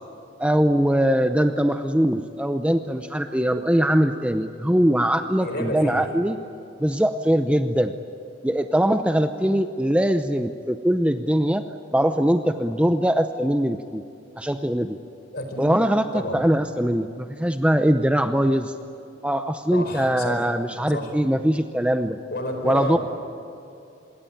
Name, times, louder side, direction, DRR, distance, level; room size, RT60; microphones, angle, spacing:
voice 1, 0.4-6.4 6.8-7.9 8.4-11.6 11.9-14.0 14.4-15.0 15.6-18.7 19.2-22.2 22.6-23.0, equal, 5° right, 8 dB, 0.7 m, -21 dB
voice 2, 5.4-6.0 15.3-15.7 16.1-16.4 19.7-20.4 20.9-21.1 22.3-23.0, left 1 dB, 55° left, 5 dB, 4.7 m, -30 dB
26.0 x 22.0 x 8.9 m, 2.6 s
head